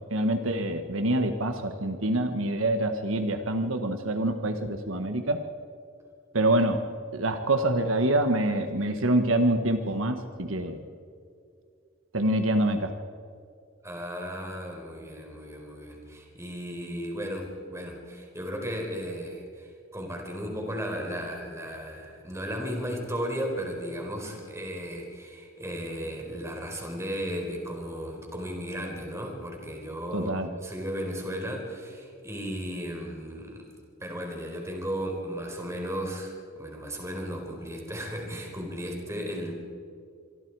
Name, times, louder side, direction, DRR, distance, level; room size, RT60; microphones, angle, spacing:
voice 1, 0.1-5.4 6.3-6.8 7.1-10.8 12.1-12.9 30.1-30.5, right 1 dB, 80° right, 7 dB, 1.4 m, -26 dB
voice 2, 13.8-33.7 34.0-39.5, equal, 15° right, 2 dB, 4.4 m, -35 dB
26.0 x 24.0 x 4.8 m, 2.4 s
head